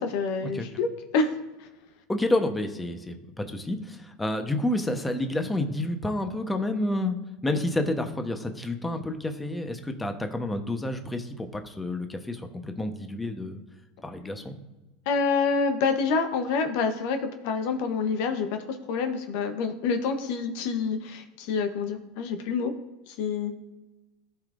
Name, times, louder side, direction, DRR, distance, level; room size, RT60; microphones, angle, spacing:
voice 1, 0.1-1.3 1.6-1.7 15.1-22.7 23.1-23.5, left 5 dB, 65° left, 7 dB, 0.9 m, -27 dB
voice 2, 2.1-7.1 7.4-13.6 14.0-14.6, left 1 dB, 10° left, 6 dB, 0.9 m, -29 dB
14.5 x 5.0 x 2.5 m, 1.1 s
hypercardioid pair, 100°, 0 cm